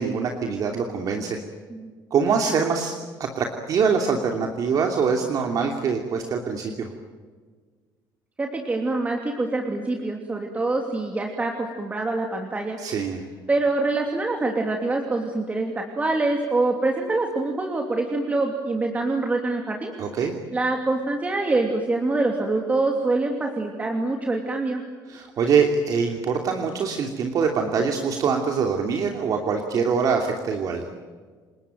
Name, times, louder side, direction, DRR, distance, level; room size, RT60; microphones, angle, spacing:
voice 1, 0.0-1.4 2.1-2.9 3.2-6.9 12.8-13.2 20.0-20.3 25.1-30.8, right 5 dB, 45° right, 3 dB, 2.8 m, -24 dB
voice 2, 8.4-12.8 13.5-19.9 20.5-24.8, right 2 dB, 15° right, 2 dB, 2.9 m, -25 dB
29.0 x 20.0 x 9.2 m, 1.5 s
cardioid pair, 140°, 8 cm